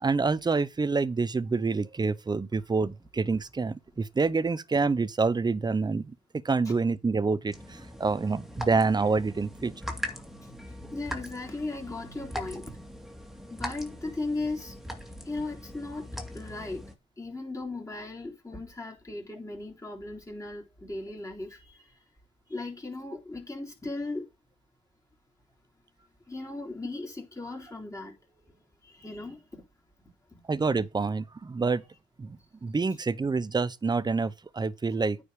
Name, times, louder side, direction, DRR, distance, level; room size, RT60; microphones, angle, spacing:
voice 1, 0.0-6.1 6.4-9.7 30.5-31.8 32.2-35.2, right 4 dB, 20° right, 0.7 m, -27 dB
sound 1, 7.5-16.9, equal, ahead, 2.3 m, -41 dB
voice 2, 10.0-10.5 10.8-12.7 13.5-14.8 15.2-16.9 17.2-22.0 22.5-24.3 26.3-29.6 30.3-30.4 34.9-35.0, left 2 dB, 15° left, 3.9 m, -37 dB
9.2 x 5.1 x 5.1 m
cardioid pair, 90°, 20 cm